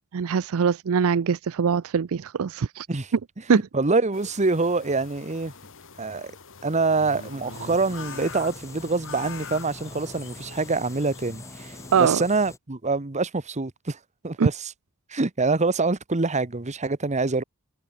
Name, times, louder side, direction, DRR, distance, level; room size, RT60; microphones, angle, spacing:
voice 1, 0.1-2.9 3.5-3.6 11.9-12.2 14.4-14.5, right 6 dB, 65° right, 0.5 m, -22 dB
voice 2, 3.5-5.5 6.0-6.3 6.6-14.0 14.2-14.7 15.1-17.4, right 3 dB, 30° right, 1.1 m, -25 dB
sound 1, 4.1-12.1, left 5 dB, 60° left, 2.8 m, -43 dB
sound 2, 7.5-12.6, left 1 dB, 15° left, 2.4 m, -44 dB
head